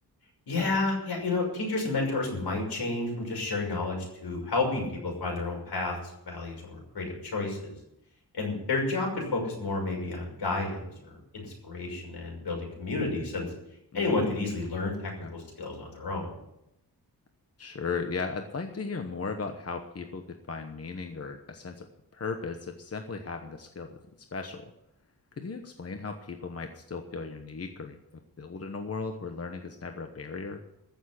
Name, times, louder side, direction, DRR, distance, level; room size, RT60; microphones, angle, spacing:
voice 1, 0.5-5.9 6.2-7.7 8.3-13.5 13.9-16.3, left 3 dB, 75° left, 0 dB, 6.2 m, -31 dB
voice 2, 13.9-14.5 15.2-15.3 17.6-21.9 22.1-24.0 24.3-24.6 25.4-28.0 28.4-30.6, left 4 dB, 35° left, 5 dB, 1.1 m, -36 dB
14.5 x 7.3 x 9.8 m, 0.83 s
wide cardioid pair, 145°, 40 cm